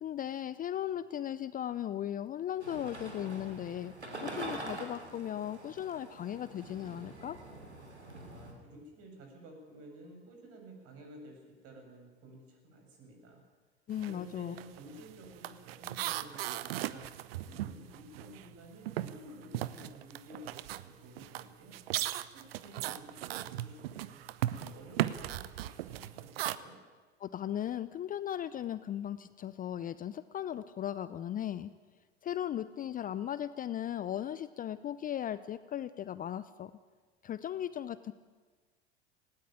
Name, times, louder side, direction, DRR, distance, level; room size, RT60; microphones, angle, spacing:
voice 1, 0.0-3.9 4.2-7.4 13.9-14.6 27.2-31.7 32.2-36.7 37.2-38.1, left 10 dB, 25° left, 15 dB, 0.6 m, -37 dB
sound 1, 2.6-8.5, right 2 dB, 90° right, 3.3 m, -45 dB
voice 2, 8.2-13.4 14.0-17.1 17.4-21.8 22.3-26.8, right 1 dB, 45° right, 3 dB, 7.2 m, -52 dB
sound 2, 13.9-14.2 14.5-18.5 18.9-26.6, right 14 dB, 65° right, 0.9 m, -37 dB
19.0 x 17.5 x 9.0 m, 1.4 s
figure-of-eight pair, 80°, 33 cm